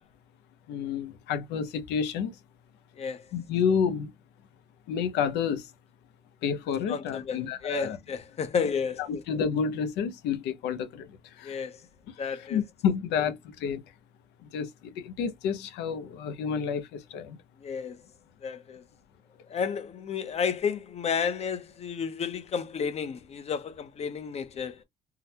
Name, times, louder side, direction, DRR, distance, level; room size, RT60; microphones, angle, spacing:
voice 1, 0.7-2.3 3.3-4.1 4.9-5.7 6.4-8.0 9.0-11.1 11.4-11.5 12.5-13.8 14.5-14.7 15.0-17.4, left 7 dB, 85° left, 0.7 m, -29 dB
voice 2, 3.0-3.3 6.9-9.2 11.4-11.8 12.2-12.6 17.6-18.0 18.4-18.8 19.5-24.8, left 6 dB, 40° left, 0.6 m, -32 dB
3.8 x 2.1 x 2.8 m
cardioid pair, 110°, 17 cm